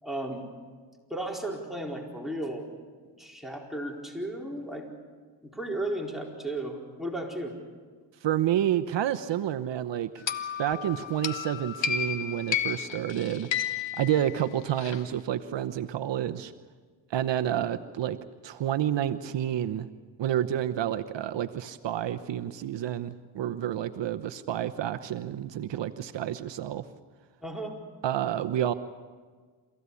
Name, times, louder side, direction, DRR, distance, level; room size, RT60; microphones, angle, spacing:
voice 1, 0.0-0.5 1.1-2.7 3.2-4.9 5.4-7.6 27.4-27.8, right 1 dB, ahead, 0 dB, 4.4 m, -34 dB
voice 2, 8.2-10.2 10.6-13.5 14.0-16.5 17.1-18.2 18.4-19.9 20.2-26.8 28.0-28.7, right 11 dB, 65° right, 10 dB, 1.0 m, -29 dB
sound 1, 10.3-15.0, left 8 dB, 65° left, 1.5 m, -32 dB
28.5 x 15.5 x 8.4 m, 1.5 s
cardioid pair, 65°, 47 cm